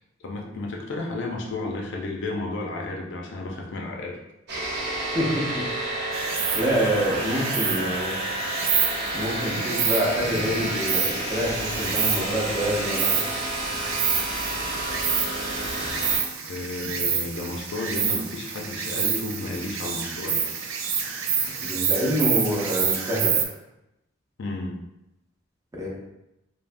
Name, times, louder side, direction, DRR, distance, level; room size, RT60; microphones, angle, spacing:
voice 1, 0.2-4.2 16.5-20.5 24.4-24.8, left 2 dB, 65° left, 0 dB, 0.5 m, -32 dB
sound 1, 4.5-16.2, right 1 dB, 55° right, 0.9 m, -30 dB
voice 2, 5.1-6.0 6.5-8.2 9.1-13.2 21.6-23.3 25.7-25.9, equal, 15° right, -5 dB, 0.6 m, -26 dB
Insect, 6.1-23.4, right 7 dB, 90° right, 0.4 m, -28 dB
3.2 x 2.1 x 2.5 m, 0.90 s
head